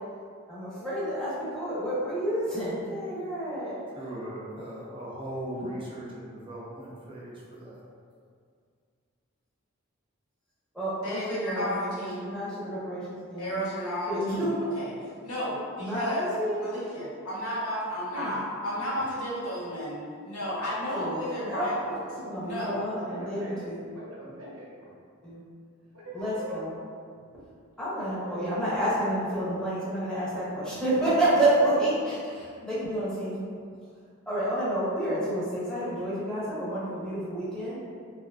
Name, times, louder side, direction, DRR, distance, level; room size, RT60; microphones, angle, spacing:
voice 1, 0.5-3.9 10.7-13.6 14.1-14.6 15.8-16.7 18.1-18.4 20.9-23.8 25.2-25.4 26.1-26.7 27.3-27.5 27.8-33.4 34.3-37.8, right 1 dB, 5° left, -11 dB, 0.8 m, -29 dB
voice 2, 4.0-7.8, right 1 dB, 25° right, -5 dB, 0.4 m, -38 dB
voice 3, 11.0-12.3 13.4-14.5 14.7-14.9 15.2-16.3 16.6-22.0 22.4-22.8, equal, 85° left, -7 dB, 0.8 m, -32 dB
voice 4, 23.0-24.9 25.9-26.6, equal, 85° right, -7 dB, 0.8 m, -42 dB
2.8 x 2.4 x 2.2 m, 2.2 s
head